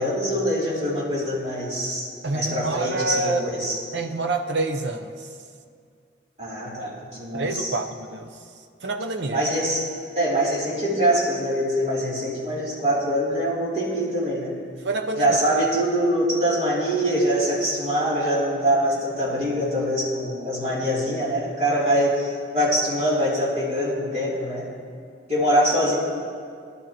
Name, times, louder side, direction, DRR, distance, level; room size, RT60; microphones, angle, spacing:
voice 1, 0.0-3.8 6.4-7.8 9.3-9.9 10.1-14.5 15.1-24.7 25.3-25.9, equal, 35° right, -7 dB, 3.0 m, -24 dB
voice 2, 2.2-3.4 3.9-5.3 7.3-8.3 8.8-9.4 14.8-15.4, right 2 dB, 75° right, 6 dB, 0.7 m, -27 dB
19.0 x 11.5 x 3.0 m, 2.2 s
head